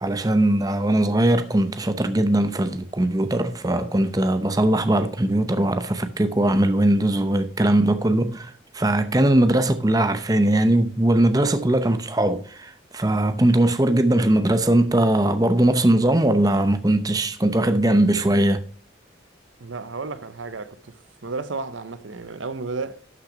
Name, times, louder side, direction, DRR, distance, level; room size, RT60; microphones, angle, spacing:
voice 1, 0.0-18.6, right 1 dB, 20° right, 0.7 m, -20 dB
voice 2, 19.6-21.0 21.2-23.0, right 4 dB, 90° right, 0.8 m, -32 dB
12.0 x 6.0 x 5.0 m
head